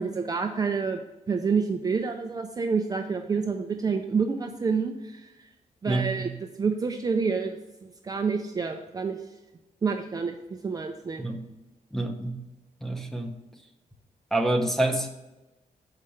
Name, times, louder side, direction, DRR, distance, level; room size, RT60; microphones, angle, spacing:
voice 1, 0.0-5.3 5.8-6.3 6.6-7.6 8.0-9.2 9.8-11.3, right 5 dB, 25° right, 4 dB, 0.4 m, -28 dB
voice 2, 5.9-6.3 11.2-11.4 11.9-12.4 12.8-13.4 14.3-15.1, right 2 dB, ahead, 5 dB, 0.7 m, -27 dB
6.5 x 4.9 x 5.6 m, 1.0 s
wide cardioid pair, 155°, 14 cm